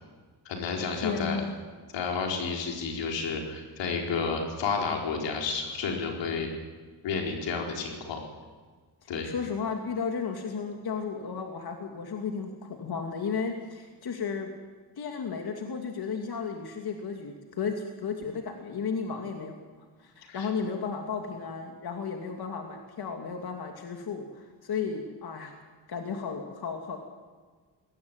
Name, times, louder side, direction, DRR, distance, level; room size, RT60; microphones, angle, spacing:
voice 1, 0.4-1.4 1.9-6.5 7.0-8.2 9.1-9.3 20.3-20.5, left 5 dB, 90° left, 2 dB, 4.6 m, -31 dB
voice 2, 1.0-1.6 9.0-14.5 15.0-19.6 20.0-25.5 25.9-27.0, left 5 dB, 60° left, 3 dB, 2.8 m, -34 dB
21.0 x 18.0 x 9.1 m, 1.4 s
cardioid pair, 75°, 42 cm